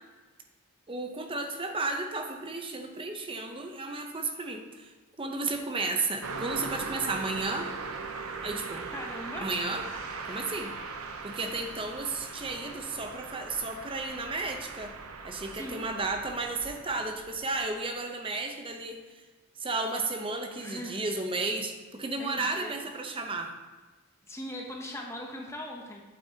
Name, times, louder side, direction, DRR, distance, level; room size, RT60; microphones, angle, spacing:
voice 1, 0.9-4.9 5.2-7.7 8.4-8.8 9.4-9.8 10.3-10.7 11.2-14.9 15.2-19.0 19.6-23.5, right 3 dB, 25° right, 4 dB, 0.7 m, -33 dB
Car passing by, 6.2-17.7, right 4 dB, 80° right, 0.8 m, -40 dB
voice 2, 8.9-9.5 15.4-15.8 20.6-21.0 22.2-22.7 24.3-26.0, left 1 dB, 15° left, 0 dB, 0.8 m, -40 dB
8.4 x 8.2 x 2.8 m, 1.3 s
head